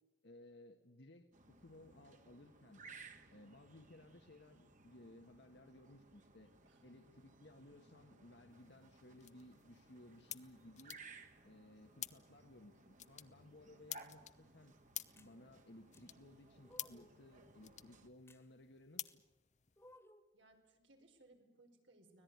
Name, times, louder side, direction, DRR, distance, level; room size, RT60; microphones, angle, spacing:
voice 1, 0.2-2.8 3.3-6.5 6.8-11.0 11.4-14.7 15.2-19.2, left 1 dB, 65° left, 6 dB, 1.5 m, -60 dB
sound 1, 1.3-18.1, right 3 dB, 40° right, 2.1 m, -61 dB
sound 2, 8.5-20.0, left 12 dB, 40° left, 0.9 m, -53 dB
sound 3, 15.2-15.3 15.9-16.0 16.6-17.2 18.3-18.4 19.0-19.2 19.8-20.3, left 1 dB, 15° left, 1.9 m, -61 dB
voice 2, 20.3-22.2, right 2 dB, 80° right, 4 dB, 5.0 m, -66 dB
25.0 x 18.0 x 9.6 m, 1.1 s
head